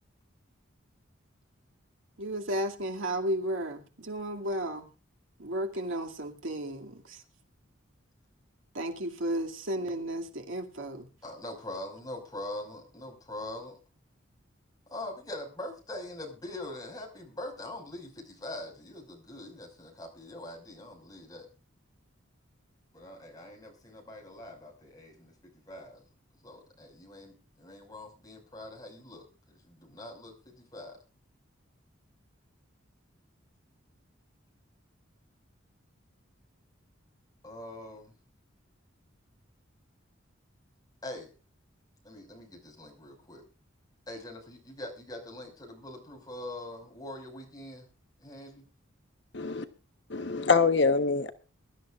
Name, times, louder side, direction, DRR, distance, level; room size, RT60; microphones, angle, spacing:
voice 1, 2.2-4.9 5.4-7.2 8.7-11.1, right 1 dB, 75° right, 2.4 m, -33 dB
voice 2, 11.2-13.8 14.9-21.5 22.9-25.3 25.7-26.0 26.4-31.0 37.4-38.1 41.0-41.3 42.0-43.4 44.1-47.9 48.2-48.6, left 1 dB, 20° left, 5.4 m, -43 dB
voice 3, 49.3-49.7 50.1-51.3, left 4 dB, 55° left, 1.1 m, -25 dB
23.0 x 12.5 x 2.5 m
head